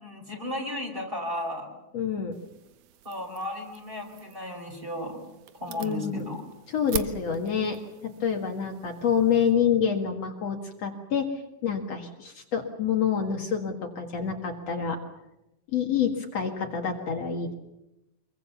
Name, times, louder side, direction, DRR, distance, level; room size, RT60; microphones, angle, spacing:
voice 1, 0.0-1.7 3.0-5.2 5.6-6.4, left 1 dB, 15° right, 2 dB, 5.1 m, -34 dB
voice 2, 1.9-2.4 5.8-6.2 6.7-15.0 15.7-17.5, left 7 dB, 60° left, 3 dB, 2.8 m, -27 dB
sound 1, 2.3-9.5, right 10 dB, 80° right, 2.5 m, -43 dB
25.5 x 23.0 x 7.1 m, 0.93 s
omnidirectional pair, 3.5 m